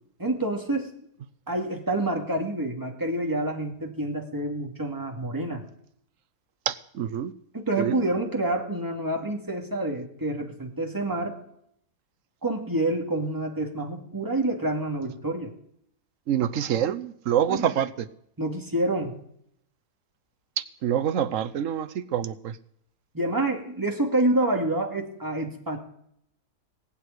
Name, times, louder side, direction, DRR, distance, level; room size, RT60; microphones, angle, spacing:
voice 1, 0.2-0.9 1.5-5.6 7.5-11.4 12.4-15.5 17.5-17.7 18.4-19.1 23.1-25.8, right 1 dB, 10° right, 2.3 m, -27 dB
voice 2, 6.7-7.3 7.8-7.9 16.3-18.1 20.8-22.6, right 10 dB, 60° right, 1.0 m, -26 dB
20.0 x 6.7 x 9.7 m
omnidirectional pair, 1.7 m